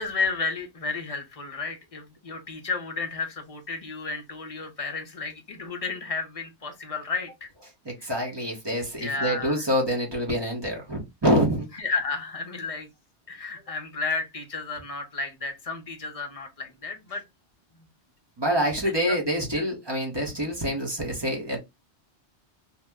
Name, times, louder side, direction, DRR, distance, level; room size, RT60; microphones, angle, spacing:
voice 1, 0.0-7.5 8.0-8.1 9.0-9.7 11.7-12.9 13.3-17.2 18.8-19.2 19.6-19.7, left 4 dB, 40° left, 0.6 m, -32 dB
voice 2, 7.8-11.7 18.4-21.6, equal, 25° right, 0.8 m, -26 dB
2.8 x 2.0 x 3.4 m
omnidirectional pair, 1.1 m